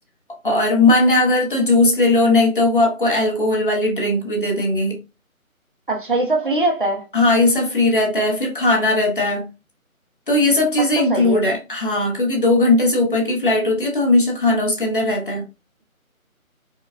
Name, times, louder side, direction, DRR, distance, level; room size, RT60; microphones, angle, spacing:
voice 1, 0.4-5.0 7.1-9.5 10.3-15.4, left 2 dB, 35° left, 0.9 m, -18 dB
voice 2, 5.9-7.0 11.0-11.4, right 2 dB, 40° right, 0.8 m, -21 dB
4.6 x 2.2 x 2.4 m
figure-of-eight pair, 150°, 43 cm